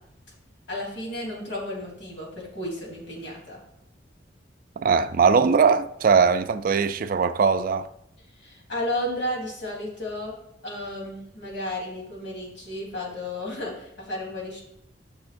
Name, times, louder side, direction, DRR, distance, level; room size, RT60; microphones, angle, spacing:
voice 1, 0.7-3.6 8.4-10.3 10.6-14.6, left 1 dB, 80° left, 3.4 m, -33 dB
voice 2, 4.8-7.9, right 5 dB, 50° right, 0.4 m, -20 dB
13.0 x 6.3 x 2.5 m
head